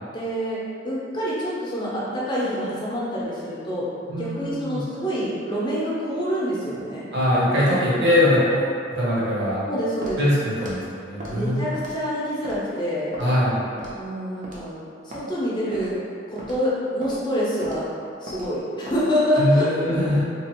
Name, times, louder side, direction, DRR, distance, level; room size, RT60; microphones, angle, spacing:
voice 1, 0.1-0.6 0.8-3.9 4.1-7.1 9.7-10.2 11.3-13.1 13.9-16.0 16.3-17.9 18.2-20.1, equal, 25° left, -8 dB, 0.7 m, -26 dB
voice 2, 4.1-4.8 7.1-8.6 8.9-9.6 10.2-11.7 13.2-13.6 19.4-20.2, left 1 dB, 65° right, -7 dB, 0.9 m, -22 dB
Walk footsteps, 10.0-10.2 10.6-10.8 11.2-11.4 11.7-12.0 12.4-12.6 13.1-13.3 13.8-14.0 14.4-14.6 15.1-15.2 15.7-15.9 16.4-16.6 17.0-17.2 17.6-17.8 18.3-18.5 18.9-19.0, equal, 40° right, 0.5 m, -37 dB
2.9 x 2.4 x 2.9 m, 2.4 s
head